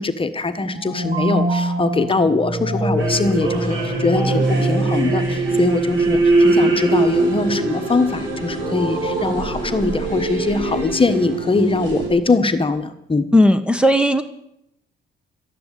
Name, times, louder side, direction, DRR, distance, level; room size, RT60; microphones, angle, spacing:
voice 1, 0.0-13.3, left 3 dB, 25° left, 10 dB, 1.4 m, -21 dB
sound 1, 0.7-6.1, right 1 dB, 50° right, 5.3 m, -24 dB
sound 2, 3.0-12.1, right 2 dB, 75° right, 5.8 m, -22 dB
voice 2, 13.3-14.2, left 1 dB, 5° right, 10 dB, 1.2 m, -15 dB
13.5 x 11.0 x 8.3 m, 0.79 s
cardioid pair, 90°, 20 cm